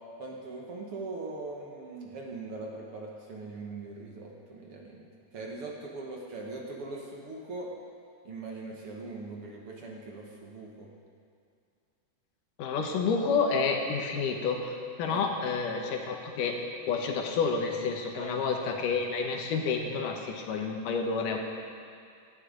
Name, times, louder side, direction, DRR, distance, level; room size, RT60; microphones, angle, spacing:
voice 1, 0.2-7.7 8.2-10.9 15.1-15.3 18.1-18.4, right 3 dB, 55° right, -1 dB, 1.9 m, -41 dB
voice 2, 12.6-16.6 16.9-21.4, left 5 dB, 85° left, 2 dB, 2.8 m, -29 dB
17.0 x 13.5 x 3.9 m, 2.3 s
omnidirectional pair, 3.6 m